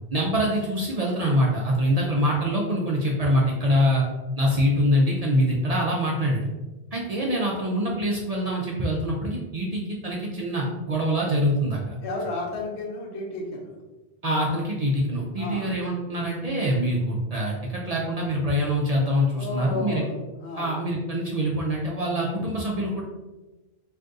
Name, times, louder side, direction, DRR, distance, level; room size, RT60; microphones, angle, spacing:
voice 1, 0.1-4.0 4.4-6.5 6.9-12.0 14.2-20.0 20.6-23.0, equal, 55° right, -3 dB, 0.4 m, -24 dB
voice 2, 12.0-13.7 15.4-15.7 19.3-20.1 20.4-20.8, left 2 dB, 85° left, 0 dB, 1.0 m, -32 dB
2.5 x 2.5 x 3.5 m, 1.1 s
omnidirectional pair, 1.1 m